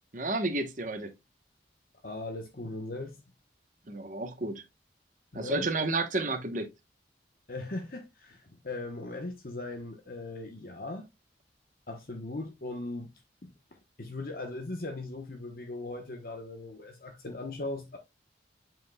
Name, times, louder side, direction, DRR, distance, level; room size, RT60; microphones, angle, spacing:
voice 1, 0.1-1.1 3.9-4.6 5.3-6.7, right 2 dB, 45° right, 1.1 m, -31 dB
voice 2, 2.0-3.2 5.3-5.7 7.5-11.1 11.9-13.1 13.4-13.5 14.0-18.0, left 2 dB, 55° left, 1.0 m, -38 dB
7.7 x 5.5 x 2.3 m
head